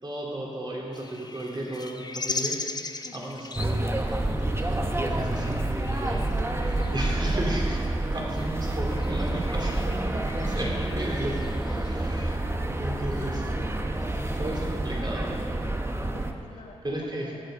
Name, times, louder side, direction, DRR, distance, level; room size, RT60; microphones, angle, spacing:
voice 1, 0.0-2.6 3.1-4.1 4.5-6.3 6.6-10.0 10.5-11.3 11.6-13.6 14.3-15.4 16.8-17.3, right 1 dB, 35° right, -3 dB, 3.5 m, -34 dB
sound 1, 0.9-12.4, left 3 dB, 35° left, 0.8 m, -40 dB
voice 2, 3.0-3.4 6.7-7.0 10.9-11.2 11.7-11.8 13.3-14.8 16.1-17.0 17.2-17.4, left 3 dB, 90° left, 1 dB, 1.5 m, -47 dB
sound 2, 3.5-16.3, right 1 dB, 20° right, 1.0 m, -28 dB
18.5 x 7.8 x 5.3 m, 2.6 s
cardioid pair, 55°, 12 cm